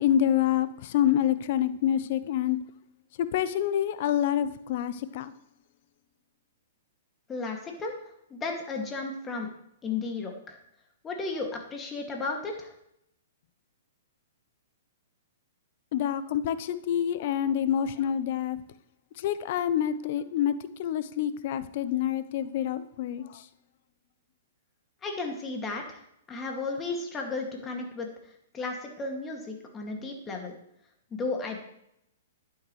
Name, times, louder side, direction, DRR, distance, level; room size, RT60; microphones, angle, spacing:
voice 1, 0.0-2.6 3.2-5.3 15.9-18.6 19.2-20.5 20.8-23.4, left 10 dB, 50° left, 14 dB, 0.7 m, -27 dB
voice 2, 7.3-7.9 8.3-9.5 9.8-10.6 11.0-12.7 25.0-26.0 26.3-28.1 28.5-30.5 31.1-31.6, left 3 dB, 20° left, 1 dB, 2.2 m, -34 dB
11.0 x 9.4 x 3.2 m, 0.77 s
hypercardioid pair, 125°, 0 cm